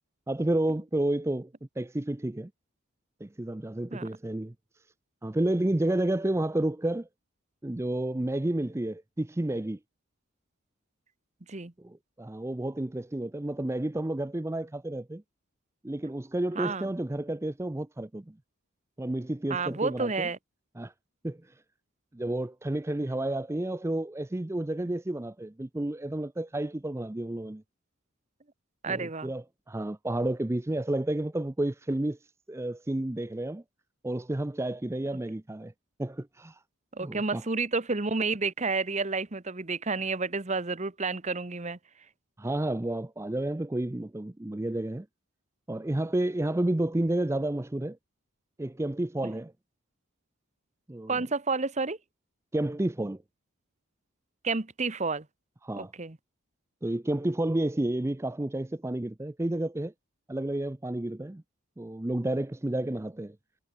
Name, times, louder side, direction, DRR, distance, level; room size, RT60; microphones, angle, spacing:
voice 1, 0.3-1.5 1.8-2.5 3.2-4.5 5.2-7.1 7.6-9.8 11.8-15.2 15.8-18.3 19.0-20.3 20.8-20.9 21.2-21.6 22.1-27.6 28.9-32.2 32.5-33.6 34.0-35.7 36.0-36.6 37.0-37.4 42.4-45.1 45.7-48.0 48.6-49.5 50.9-51.2 52.5-53.2 55.6-55.9 56.8-59.9 60.3-61.4 61.8-63.4, right 1 dB, 10° right, 0.4 m, -31 dB
voice 2, 16.5-16.9 19.5-20.4 28.8-29.3 36.9-41.8 51.1-52.0 54.4-55.2 55.8-56.2, right 4 dB, 30° right, 1.1 m, -30 dB
head